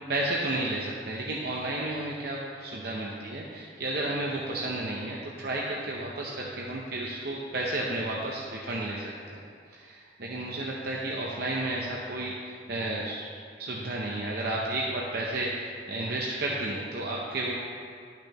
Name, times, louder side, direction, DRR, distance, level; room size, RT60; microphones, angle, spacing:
voice 1, 0.1-9.0 9.3-9.4 9.7-13.3 13.6-17.5, right 2 dB, 50° right, -3 dB, 0.7 m, -32 dB
12.5 x 5.9 x 3.0 m, 2.2 s
head